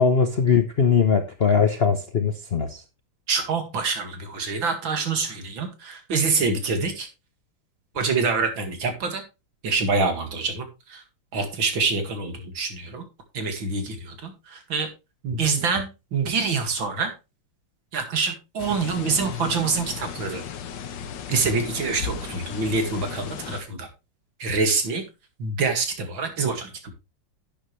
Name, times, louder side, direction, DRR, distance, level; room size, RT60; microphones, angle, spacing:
voice 1, 0.0-2.8, left 6 dB, 50° left, 6 dB, 0.7 m, -20 dB
voice 2, 3.3-7.1 7.9-9.2 9.6-11.0 11.3-13.1 13.3-14.9 15.2-17.1 17.9-20.4 21.3-23.9 24.4-25.0 25.4-26.9, right 4 dB, 65° right, 6 dB, 2.8 m, -26 dB
sound 1, 18.6-23.6, left 7 dB, 65° left, 1.6 m, -35 dB
11.5 x 8.8 x 3.2 m, 0.27 s
omnidirectional pair, 2.3 m